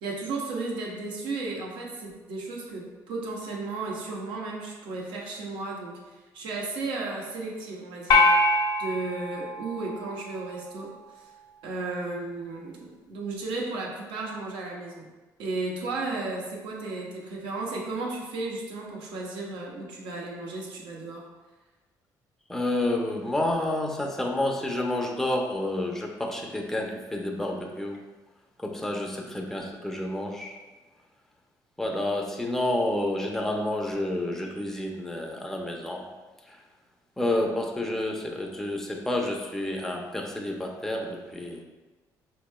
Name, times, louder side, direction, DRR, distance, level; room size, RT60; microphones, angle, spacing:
voice 1, 0.0-6.0 6.3-8.3 8.8-11.3 11.6-15.1 15.4-21.3, right 3 dB, 80° right, -2 dB, 0.8 m, -34 dB
sound 1, 8.1-10.6, left 2 dB, 55° left, 0.5 m, -24 dB
voice 2, 22.5-28.0 28.6-30.6 31.8-36.1 36.5-36.6 37.2-41.6, left 1 dB, 5° left, 0 dB, 0.5 m, -29 dB
4.4 x 3.0 x 2.2 m, 1.2 s
supercardioid pair, 75°, 8 cm